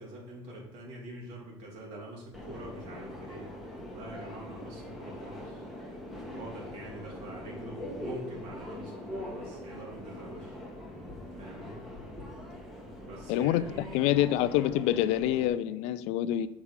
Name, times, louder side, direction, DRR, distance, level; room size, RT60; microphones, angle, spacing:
voice 1, 0.0-3.5 3.9-5.7 6.3-10.6 11.4-11.8 13.0-14.1, right 1 dB, 65° right, 3.1 m, -45 dB
Subway metro underground, 2.3-15.5, left 1 dB, ahead, 1.6 m, -43 dB
voice 2, 13.3-16.5, left 12 dB, 70° left, 0.5 m, -27 dB
7.2 x 4.8 x 5.6 m
cardioid pair, 135°, 11 cm